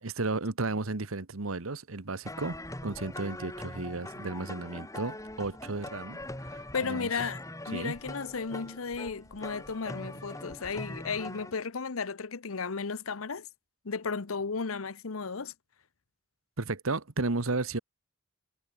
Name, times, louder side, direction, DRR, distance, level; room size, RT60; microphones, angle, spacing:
voice 1, 0.0-6.2 6.5-7.1 7.7-7.9 16.6-17.8, right 3 dB, 80° right, 1.4 m, -33 dB
sound 1, 2.2-11.5, left 1 dB, 15° left, 4.4 m, -42 dB
voice 2, 6.7-13.5 13.8-15.5, left 5 dB, 90° left, 0.9 m, -34 dB
head